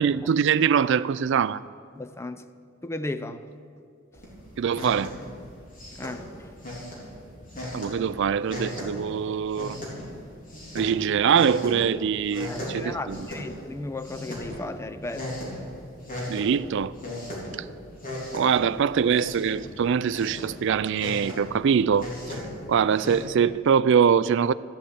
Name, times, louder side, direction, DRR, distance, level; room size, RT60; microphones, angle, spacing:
voice 1, 0.0-1.6 4.6-5.1 7.7-9.8 10.7-13.3 16.3-16.9 18.3-22.4 22.7-24.5, right 7 dB, 60° right, 0.4 m, -23 dB
voice 2, 2.0-2.4 2.8-3.4 5.9-6.3 12.4-15.3, left 2 dB, 15° left, 0.5 m, -35 dB
sound 1, 4.1-23.2, left 1 dB, 40° left, 3.8 m, -38 dB
14.0 x 8.2 x 8.7 m
head